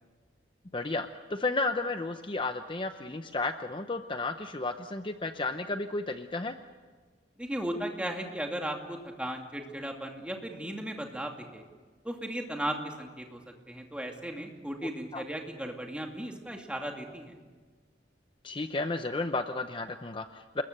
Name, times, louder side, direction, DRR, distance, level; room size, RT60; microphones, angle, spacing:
voice 1, 0.7-6.5 15.1-15.2 18.4-20.6, left 3 dB, 30° left, 8 dB, 0.7 m, -33 dB
voice 2, 7.4-11.6 12.0-13.4 13.7-17.3, right 1 dB, 5° right, 2 dB, 2.5 m, -36 dB
29.0 x 21.0 x 6.7 m, 1.4 s
head